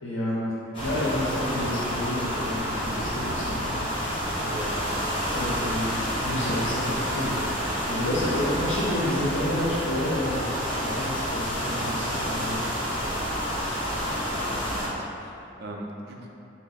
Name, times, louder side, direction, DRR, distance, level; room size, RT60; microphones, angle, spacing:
voice 1, 0.0-4.8 5.3-7.5 7.9-12.6 14.5-14.6, left 1 dB, 85° left, -7 dB, 0.7 m, -30 dB
sound 1, 0.7-14.9, equal, 25° left, 1.0 m, -29 dB
voice 2, 14.5-16.3, right 1 dB, 55° right, -1 dB, 0.5 m, -41 dB
4.8 x 2.2 x 3.9 m, 2.7 s
head